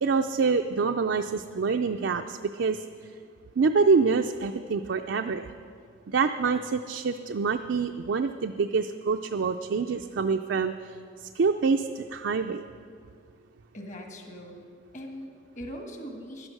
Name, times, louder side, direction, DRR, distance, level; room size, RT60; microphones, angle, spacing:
voice 1, 0.0-2.8 3.6-5.5 6.1-11.0 11.3-12.6, right 4 dB, 75° right, 5 dB, 0.4 m, -26 dB
voice 2, 13.7-14.6 14.9-16.5, equal, 40° left, 3 dB, 1.5 m, -41 dB
11.5 x 11.0 x 6.5 m, 2.2 s
head